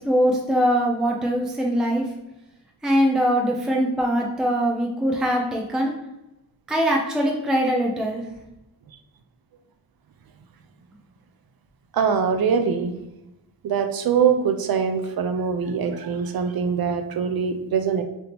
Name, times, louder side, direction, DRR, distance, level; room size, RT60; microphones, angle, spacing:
voice 1, 0.0-2.0 2.8-5.9 6.7-8.2, equal, ahead, 0 dB, 0.5 m, -22 dB
voice 2, 11.9-12.9 13.6-18.0, right 6 dB, 65° right, 6 dB, 0.5 m, -23 dB
3.4 x 2.7 x 4.1 m, 0.92 s
wide cardioid pair, 90°, 38 cm